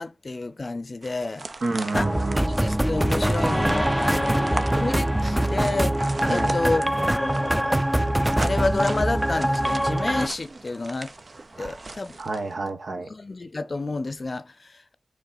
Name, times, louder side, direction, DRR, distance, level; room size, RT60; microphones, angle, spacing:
voice 1, 0.0-1.5 1.9-2.1 2.6-7.8 8.4-11.1 11.6-12.2 13.1-15.0, left 3 dB, 55° left, 0.6 m, -30 dB
sound 1, 1.0-12.5, right 3 dB, 60° right, 0.7 m, -39 dB
voice 2, 1.6-2.5 6.2-6.5 11.6-11.8 12.2-13.1, right 3 dB, 80° right, 1.3 m, -29 dB
sound 2, 1.9-10.3, right 1 dB, 10° right, 0.5 m, -23 dB
6.8 x 5.1 x 4.1 m
cardioid pair, 50°, 0 cm